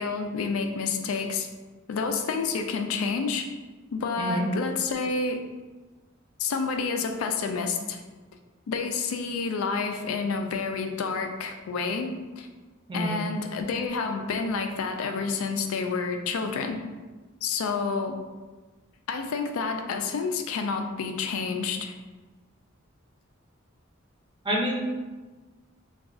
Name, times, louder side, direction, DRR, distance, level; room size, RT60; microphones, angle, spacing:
voice 1, 0.0-1.5 1.9-3.5 3.9-5.4 6.4-8.0 8.7-12.5 12.9-16.8 17.4-18.2 19.1-21.9, left 4 dB, 90° left, 5 dB, 0.4 m, -29 dB
voice 2, 24.4-24.8, equal, 25° right, -2 dB, 0.5 m, -27 dB
2.4 x 2.3 x 3.6 m, 1.3 s
head